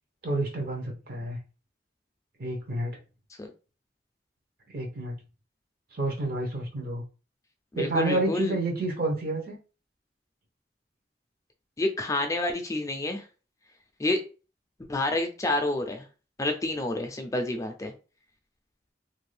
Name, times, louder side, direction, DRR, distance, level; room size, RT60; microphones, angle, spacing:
voice 1, 0.2-1.4 2.4-3.0 4.7-5.1 5.9-7.0 7.7-9.6, right 2 dB, 55° right, 2 dB, 0.7 m, -29 dB
voice 2, 7.7-8.5 11.8-13.3 14.0-14.2 14.9-16.1 16.4-17.9, left 2 dB, 15° left, 5 dB, 0.3 m, -28 dB
2.6 x 2.2 x 3.2 m, 0.34 s
head